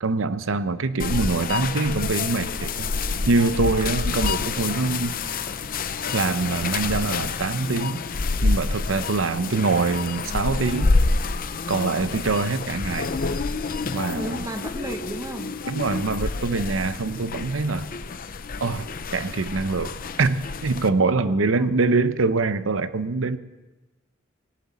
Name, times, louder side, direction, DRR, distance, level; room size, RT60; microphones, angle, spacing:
voice 1, 0.0-5.1 6.1-8.0 8.4-11.0 11.7-13.1 13.9-14.4 15.7-17.9 18.6-18.8 19.1-23.4, right 3 dB, 80° right, 13 dB, 0.7 m, -24 dB
sound 1, 1.0-20.9, left 3 dB, 45° left, 0.7 m, -28 dB
voice 2, 14.1-15.6 21.0-21.7, equal, 15° right, 6 dB, 1.1 m, -35 dB
19.0 x 17.5 x 4.2 m, 1.1 s
head